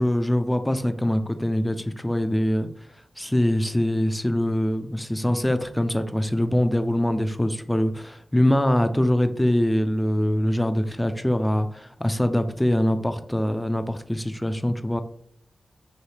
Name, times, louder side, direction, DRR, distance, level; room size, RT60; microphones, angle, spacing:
voice 1, 0.0-2.7 3.2-15.0, left 1 dB, 10° left, 9 dB, 0.5 m, -23 dB
3.2 x 2.8 x 4.2 m, 0.64 s
cardioid pair, 60°, 0 cm